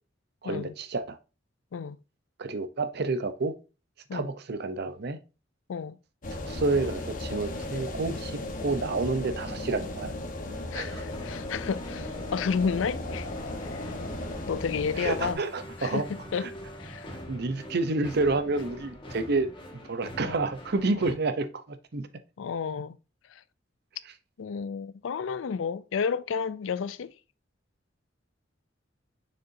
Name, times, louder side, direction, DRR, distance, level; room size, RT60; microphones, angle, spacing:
voice 1, 0.4-1.2 2.4-3.5 4.1-5.2 6.3-10.1 10.7-11.1 15.0-16.1 16.4-16.5 17.3-22.1, right 3 dB, 60° right, 0.7 m, -29 dB
sound 1, 6.2-15.3, left 2 dB, 45° left, 1.1 m, -36 dB
voice 2, 10.7-13.3 13.7-13.8 14.5-15.4 15.8-16.1 16.3-16.5 16.8-17.1 20.2-20.4 22.4-23.0 24.4-27.1, left 6 dB, 90° left, 0.4 m, -31 dB
sound 2, 10.9-21.1, equal, 25° left, 1.6 m, -44 dB
6.6 x 6.5 x 2.7 m
head